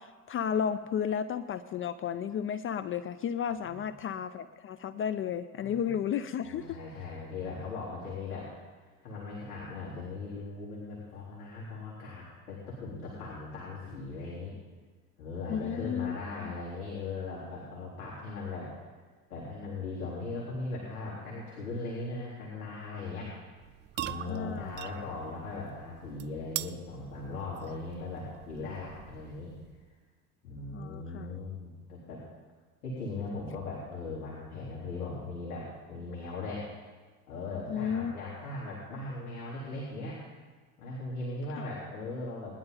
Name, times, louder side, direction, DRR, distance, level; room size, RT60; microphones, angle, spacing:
voice 1, 0.0-6.7 15.5-16.2 16.4-16.5 24.3-24.7 30.7-31.4 37.7-38.1 41.6-41.7, left 8 dB, 30° left, 12 dB, 0.5 m, -33 dB
voice 2, 5.6-5.9 6.4-8.6 9.0-14.5 15.2-18.7 19.3-23.3 24.0-29.5 30.4-32.2 32.8-36.7 37.3-40.2 40.8-42.6, left 3 dB, 75° left, -7 dB, 3.9 m, -39 dB
sound 1, 23.6-30.0, right 14 dB, 25° right, 0.3 m, -43 dB
20.0 x 11.0 x 4.0 m, 1.4 s
hypercardioid pair, 70°, 46 cm